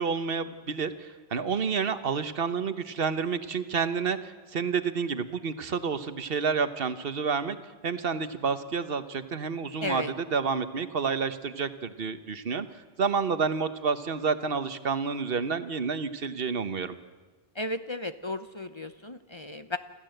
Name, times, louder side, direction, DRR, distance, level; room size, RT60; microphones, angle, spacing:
voice 1, 0.0-7.6 7.8-12.7 13.0-17.0, right 5 dB, 65° right, 11 dB, 1.2 m, -29 dB
voice 2, 9.8-10.1 17.6-19.8, left 2 dB, 30° left, 10 dB, 0.7 m, -34 dB
27.5 x 14.5 x 7.8 m, 1.3 s
omnidirectional pair, 1.0 m